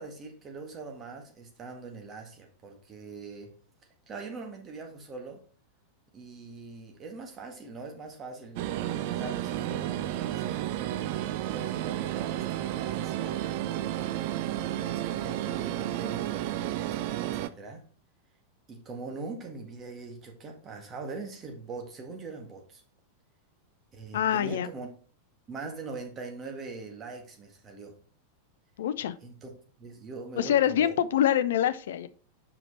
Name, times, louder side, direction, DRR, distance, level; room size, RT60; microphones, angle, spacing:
voice 1, 0.0-3.5 4.1-5.4 6.1-10.6 11.3-13.4 14.5-17.9 18.7-22.8 23.9-24.9 25.5-28.0 29.2-29.5 29.8-30.9, right 4 dB, 25° right, 1.7 m, -42 dB
sound 1, 8.6-17.5, right 13 dB, 50° right, 0.4 m, -32 dB
voice 2, 24.1-24.7 28.8-29.1 30.4-32.1, left 10 dB, 60° left, 0.5 m, -25 dB
6.0 x 5.0 x 4.4 m
figure-of-eight pair, 90°, 0 cm